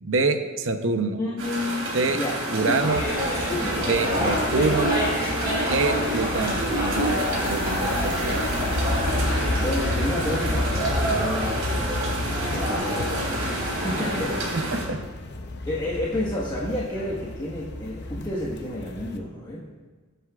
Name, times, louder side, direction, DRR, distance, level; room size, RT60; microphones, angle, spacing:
voice 1, 0.0-1.2 1.9-2.2 2.5-3.0 3.8-4.9 5.7-8.5 14.5-15.0, right 3 dB, 60° right, 7 dB, 0.8 m, -26 dB
voice 2, 1.2-2.4 2.7-2.9 3.5-4.7 9.6-11.6 12.5-14.4 15.7-19.6, left 1 dB, 20° left, -7 dB, 1.4 m, -30 dB
sound 1, 1.4-14.9, right 1 dB, 90° right, 3.2 m, -31 dB
sound 2, 2.5-14.2, equal, 20° right, 2.8 m, -28 dB
sound 3, 2.8-19.2, left 2 dB, 50° left, 0.7 m, -32 dB
21.0 x 8.0 x 2.4 m, 1.4 s
head